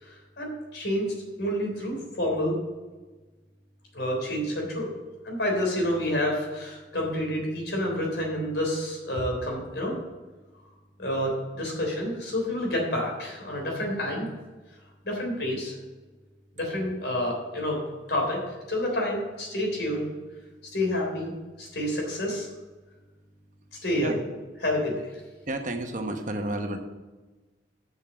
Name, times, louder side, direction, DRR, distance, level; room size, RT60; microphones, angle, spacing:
voice 1, 0.0-1.1 1.4-2.6 3.9-4.9 5.2-10.0 11.0-14.3 15.0-15.7 16.5-17.8 18.1-18.4 18.7-20.1 20.7-21.3 21.6-22.5 23.8-24.2 24.6-25.1, left 1 dB, 70° left, 0 dB, 3.4 m, -28 dB
voice 2, 25.5-26.8, right 1 dB, 45° right, 5 dB, 1.0 m, -31 dB
7.3 x 6.4 x 7.5 m, 1.2 s
head